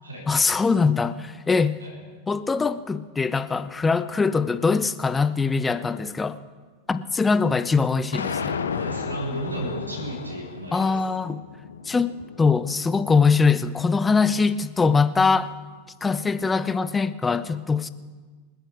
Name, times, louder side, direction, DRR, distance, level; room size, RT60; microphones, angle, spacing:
voice 1, 0.3-1.8 2.3-6.4 6.9-8.6 10.7-11.4 11.9-15.5 16.0-17.9, left 4 dB, 15° left, 13 dB, 0.6 m, -22 dB
sound 1, 8.1-14.3, left 6 dB, 70° left, 0.7 m, -34 dB
voice 2, 8.7-11.0, right 1 dB, 75° right, -3 dB, 4.4 m, -33 dB
25.5 x 10.0 x 3.5 m, 1.4 s
figure-of-eight pair, 90°, 0 cm